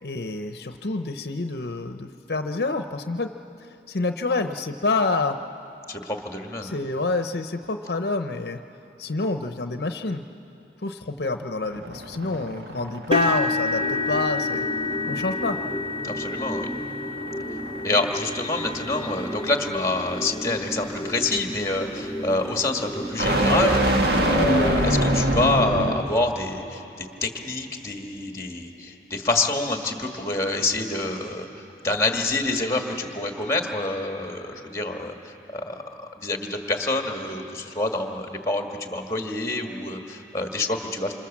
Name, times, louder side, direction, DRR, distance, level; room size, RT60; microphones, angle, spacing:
voice 1, 0.0-3.3 3.6-5.4 6.6-8.6 9.0-10.2 10.8-14.6 15.1-15.6, left 3 dB, 65° left, 7 dB, 0.7 m, -27 dB
voice 2, 5.9-6.7 16.0-16.7 17.8-35.8 36.2-41.1, left 2 dB, 15° left, 3 dB, 1.7 m, -27 dB
sound 1, 11.6-26.2, right 1 dB, 65° right, 2.0 m, -27 dB
sound 2, 13.1-21.1 21.8-22.0 22.4-22.5 23.9-24.0, left 3 dB, 30° right, 1.2 m, -30 dB
sound 3, 13.8-23.8, equal, 5° right, 2.4 m, -35 dB
27.0 x 26.5 x 7.4 m, 2.9 s
head